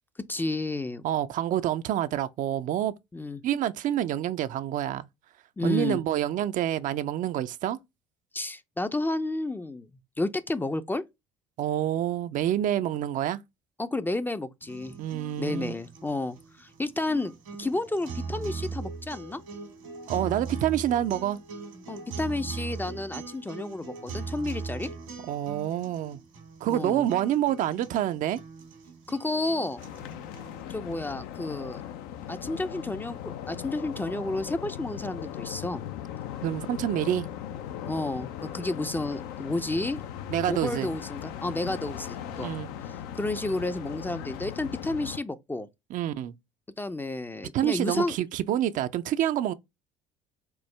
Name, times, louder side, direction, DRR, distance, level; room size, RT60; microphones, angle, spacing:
voice 1, 0.3-1.0 3.1-3.4 5.6-6.0 8.3-9.9 10.2-11.0 13.8-14.9 15.4-17.3 17.6-19.4 21.9-24.9 26.7-27.1 29.1-29.8 30.7-31.8 32.3-35.8 37.9-40.0 40.5-42.5 42.9-45.7 46.8-48.2, left 2 dB, 10° left, 0.4 m, -31 dB
voice 2, 1.0-2.9 3.4-5.1 5.6-7.8 11.6-13.4 15.0-15.7 20.1-21.4 25.3-26.2 26.6-28.4 36.4-37.3 40.3-40.9 42.4-42.7 45.9-46.3 47.5-49.5, right 11 dB, 50° right, 0.4 m, -27 dB
sound 1, 14.6-30.6, right 4 dB, 85° right, 1.6 m, -40 dB
sound 2, 29.8-45.2, left 10 dB, 65° left, 0.4 m, -38 dB
4.5 x 2.0 x 3.2 m
hypercardioid pair, 60°, 17 cm